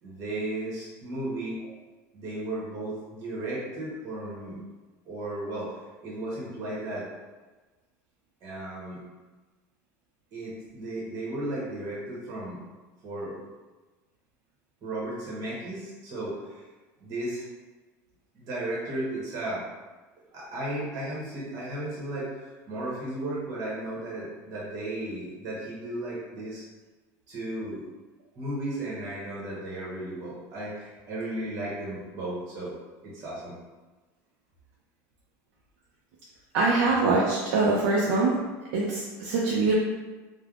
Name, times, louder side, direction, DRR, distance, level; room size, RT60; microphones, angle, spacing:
voice 1, 0.0-1.6 2.1-4.6 5.0-7.1 8.4-9.0 10.3-12.6 13.0-13.4 14.8-16.7 17.0-17.4 18.3-19.6 20.3-26.6 27.3-27.8 28.4-32.7 33.0-33.6, right 1 dB, 45° right, -6 dB, 1.0 m, -35 dB
voice 2, 36.5-38.3 38.7-39.7, right 3 dB, 85° right, -4 dB, 0.4 m, -23 dB
3.3 x 2.1 x 2.4 m, 1.2 s
cardioid pair, 150°, 8 cm